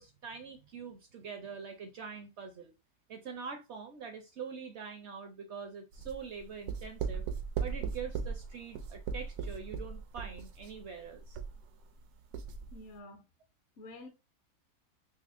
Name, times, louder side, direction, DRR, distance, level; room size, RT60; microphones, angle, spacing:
voice 1, 0.0-2.7 3.1-7.3 7.6-11.4, right 6 dB, 60° right, 0.7 m, -44 dB
sound 1, 5.9-12.0 12.3-12.8, right 6 dB, 80° right, 1.1 m, -38 dB
voice 2, 12.7-13.2 13.8-14.1, left 2 dB, 60° left, 0.8 m, -48 dB
5.4 x 2.0 x 2.5 m
omnidirectional pair, 1.6 m